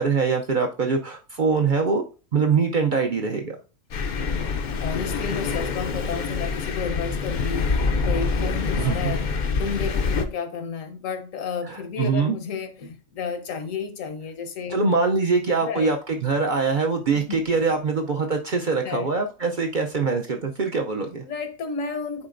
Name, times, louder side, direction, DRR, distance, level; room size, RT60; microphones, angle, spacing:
voice 1, 0.0-2.0 2.3-3.6 8.8-9.1 11.7-12.4 14.7-21.2, right 4 dB, 50° right, 0.6 m, -23 dB
Thunder, 3.9-10.3, left 4 dB, 50° left, 0.5 m, -26 dB
voice 2, 4.8-9.3 9.6-14.8 15.6-15.9 17.1-17.4 18.8-19.1 21.2-22.3, left 5 dB, 80° left, 1.3 m, -32 dB
9.6 x 4.2 x 2.5 m
omnidirectional pair, 1.4 m